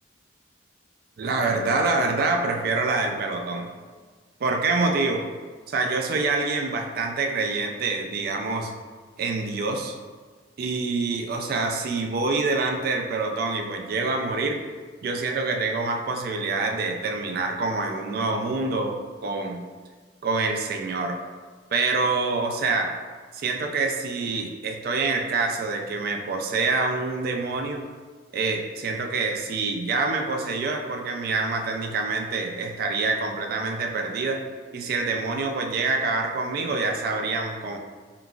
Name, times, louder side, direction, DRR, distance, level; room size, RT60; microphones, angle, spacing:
voice 1, 1.2-3.7 4.4-5.2 5.7-8.7 9.2-10.0 10.6-14.6 15.0-19.6 20.2-21.2 21.7-22.9 23.3-27.8 28.3-34.4 34.7-37.8, right 3 dB, 55° right, 3 dB, 0.3 m, -26 dB
3.8 x 2.3 x 2.3 m, 1.5 s
head